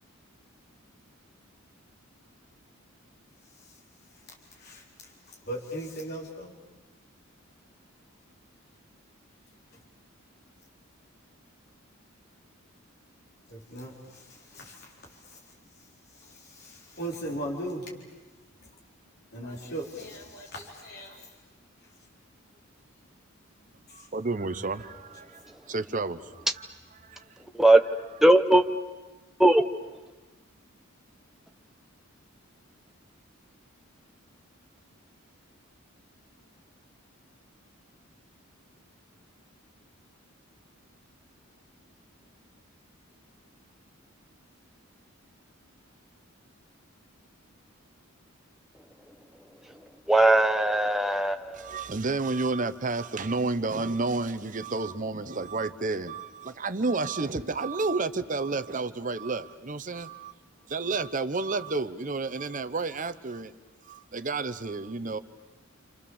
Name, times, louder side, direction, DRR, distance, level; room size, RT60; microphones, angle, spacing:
voice 1, 4.5-6.6 13.5-15.4 16.1-17.9 18.6-18.7 19.3-21.3 23.9-24.1, right 1 dB, 50° left, 4.0 m, -39 dB
voice 2, 23.9-26.4 27.0-27.3 51.5-60.3 60.7-63.5 63.8-65.2, right 3 dB, 40° right, 0.8 m, -31 dB
voice 3, 28.2-28.7 29.4-29.6 49.6-49.7 50.1-51.8, right 1 dB, ahead, 0.9 m, -20 dB
29.0 x 27.0 x 7.2 m
head